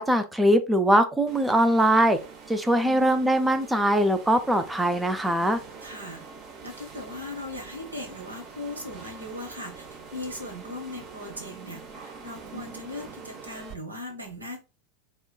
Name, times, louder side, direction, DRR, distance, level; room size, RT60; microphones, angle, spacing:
voice 1, 0.0-2.2 2.5-5.6, right 1 dB, 10° right, 9 dB, 0.4 m, -22 dB
sound 1, 1.3-13.7, right 5 dB, 35° right, 0.7 m, -44 dB
voice 2, 2.7-3.1 5.8-6.2 6.6-14.6, left 2 dB, 80° right, 4 dB, 0.9 m, -39 dB
4.3 x 2.2 x 2.2 m, 0.30 s
figure-of-eight pair, 85°, 0 cm